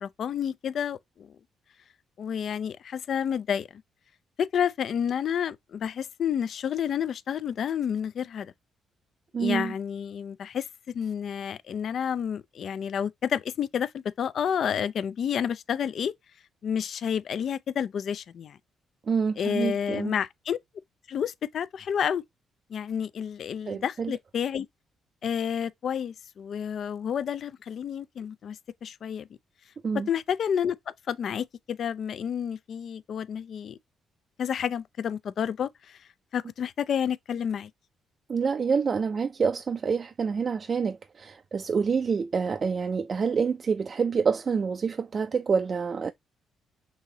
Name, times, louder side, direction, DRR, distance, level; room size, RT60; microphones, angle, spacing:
voice 1, 0.0-1.4 2.2-3.8 4.4-8.5 9.4-16.1 16.6-18.6 19.4-20.6 21.1-22.2 22.7-24.7 25.2-29.3 30.1-33.8 34.4-37.7, left 8 dB, 60° left, 0.4 m, -30 dB
voice 2, 9.3-9.7 19.1-20.1 23.7-24.1 29.8-30.1 38.3-46.1, right 5 dB, 40° right, 0.3 m, -27 dB
6.2 x 2.9 x 2.7 m
cardioid pair, 90°, 0 cm